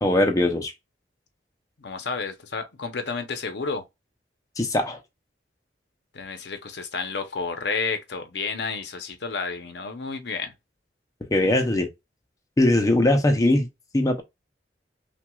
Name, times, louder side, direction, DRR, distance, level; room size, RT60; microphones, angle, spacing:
voice 1, 0.0-0.7 4.6-5.0 11.3-11.9 12.6-13.7 13.9-14.2, left 1 dB, 20° left, 0.6 m, -20 dB
voice 2, 1.8-3.8 6.1-10.5, left 4 dB, 65° left, 0.7 m, -31 dB
5.8 x 2.3 x 2.3 m
head